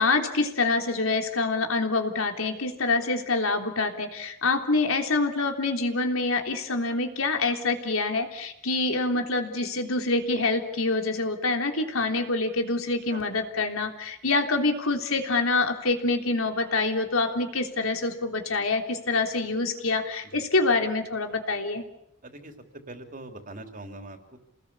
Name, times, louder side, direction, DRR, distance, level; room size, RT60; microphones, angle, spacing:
voice 1, 0.0-21.8, left 3 dB, 80° left, 4 dB, 3.5 m, -26 dB
voice 2, 22.2-22.5 22.9-24.4, right 2 dB, 40° right, 5 dB, 3.3 m, -42 dB
28.5 x 20.0 x 8.4 m, 0.79 s
head